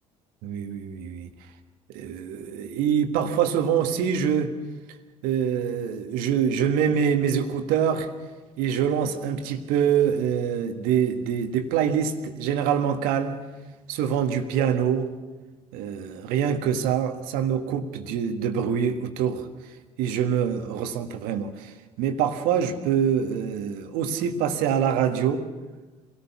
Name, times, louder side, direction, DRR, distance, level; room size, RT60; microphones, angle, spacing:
voice 1, 0.4-1.3 1.9-4.5 5.2-8.1 8.6-13.4 13.9-15.1 15.7-19.4 20.0-21.7 22.0-25.4, right 8 dB, 60° right, 7 dB, 1.6 m, -25 dB
26.5 x 18.0 x 5.9 m, 1.2 s
figure-of-eight pair, 60°, 16 cm